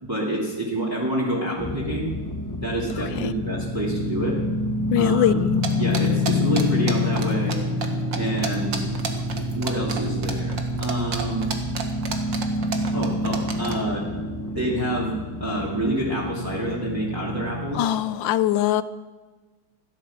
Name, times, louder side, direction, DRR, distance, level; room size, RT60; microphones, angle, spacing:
voice 1, 0.0-2.1 2.6-4.4 5.0-5.3 5.8-7.6 8.1-8.8 9.6-11.5 12.9-14.1 14.5-17.9, right 1 dB, 10° right, 2.5 m, -27 dB
sound 1, 1.6-17.8, left 2 dB, 15° left, 0.8 m, -27 dB
voice 2, 4.9-5.6 17.7-18.8, left 12 dB, 85° left, 1.4 m, -22 dB
sound 2, 5.6-7.6 7.8-13.8, right 6 dB, 75° right, 2.2 m, -30 dB
15.5 x 11.5 x 7.1 m
omnidirectional pair, 2.0 m